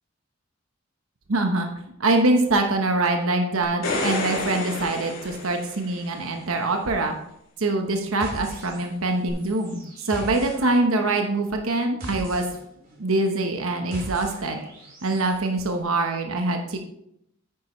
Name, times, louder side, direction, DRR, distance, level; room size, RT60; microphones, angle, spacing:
voice 1, 1.3-1.7 2.0-7.1 7.6-12.4 13.0-14.6 15.0-16.8, right 2 dB, 85° right, 4 dB, 1.0 m, -24 dB
sound 1, 3.6-6.2 9.3-9.4, left 2 dB, 75° left, 2.6 m, -29 dB
sound 2, 8.2-9.1 9.4-15.4, equal, 45° right, 3.5 m, -40 dB
9.5 x 9.4 x 3.2 m, 0.76 s
head